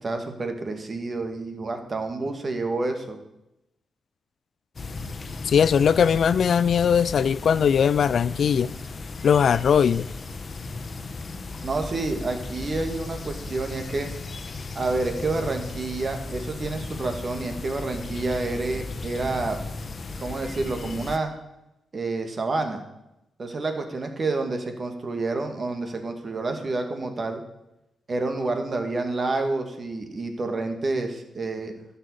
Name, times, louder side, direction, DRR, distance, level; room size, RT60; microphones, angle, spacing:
voice 1, 0.0-3.2 11.6-14.1 14.8-19.6 20.2-21.3 21.9-22.8 23.4-27.4 28.1-31.7, right 3 dB, 45° right, 2.1 m, -29 dB
sound 1, 4.8-21.2, left 3 dB, 45° left, 1.1 m, -36 dB
voice 2, 5.4-8.7 9.2-10.1, left 7 dB, 65° left, 0.4 m, -20 dB
12.0 x 5.8 x 8.5 m
supercardioid pair, 50°, 0 cm